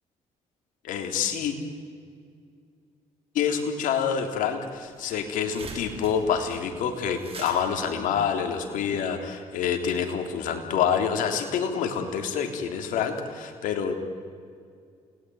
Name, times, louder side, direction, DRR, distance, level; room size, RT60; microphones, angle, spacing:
voice 1, 0.8-1.6 3.4-13.9, left 7 dB, 80° left, 5 dB, 3.4 m, -27 dB
sound 1, 4.4-4.5 4.7-9.0, right 4 dB, 45° right, 6.6 m, -43 dB
29.0 x 19.5 x 9.5 m, 2.2 s
supercardioid pair, 70°, 13 cm